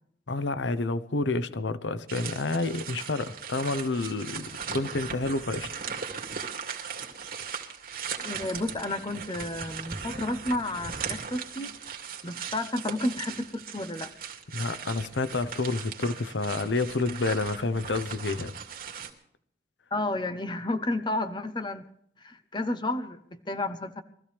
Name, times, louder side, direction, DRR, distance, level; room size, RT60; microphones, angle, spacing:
voice 1, 0.3-5.8 14.5-18.6, left 3 dB, 90° left, 0.8 m, -29 dB
sound 1, 2.1-19.1, right 6 dB, 55° right, 2.3 m, -38 dB
voice 2, 8.2-11.7 12.2-14.1 19.9-21.9 22.2-24.0, left 2 dB, 25° left, 0.9 m, -31 dB
23.0 x 14.5 x 3.4 m
head